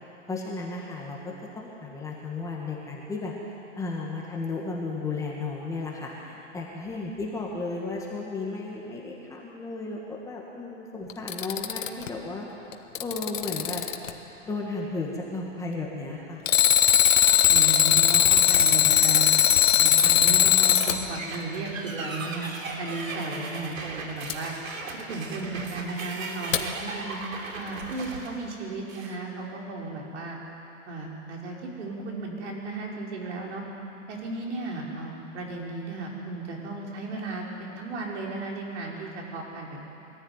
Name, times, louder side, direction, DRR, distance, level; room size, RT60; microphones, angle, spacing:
voice 1, 0.3-3.3 3.8-12.5 13.0-13.8 14.5-16.4, left 3 dB, 10° left, -3 dB, 1.7 m, -34 dB
Alarm, 11.1-12.1 12.7-14.1 16.5-21.0 24.3-24.4 26.5-26.6, left 9 dB, 70° left, 1.6 m, -19 dB
voice 2, 17.5-19.3 19.7-22.5 22.8-24.5 25.1-27.2 27.5-30.4 30.9-33.6 34.1-39.8, right 3 dB, 60° right, -2 dB, 5.2 m, -35 dB
sound 1, 20.9-29.2, right 3 dB, 85° right, 3.1 m, -37 dB
22.0 x 14.5 x 9.7 m, 2.9 s
hypercardioid pair, 155°, 39 cm